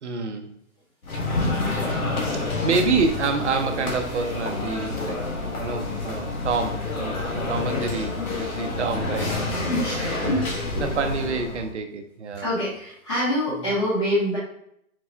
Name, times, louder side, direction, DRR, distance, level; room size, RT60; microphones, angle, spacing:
voice 1, 0.0-0.5 2.3-5.2 5.6-9.4 10.0-10.4 10.8-12.5 13.6-13.7, right 4 dB, 55° right, 6 dB, 0.7 m, -28 dB
sound 1, 1.0-11.7, left 3 dB, 85° left, 1.5 m, -28 dB
voice 2, 9.6-10.9 12.3-14.4, equal, 25° left, -10 dB, 0.8 m, -26 dB
5.9 x 2.2 x 3.4 m, 0.71 s
hypercardioid pair, 180°, 41 cm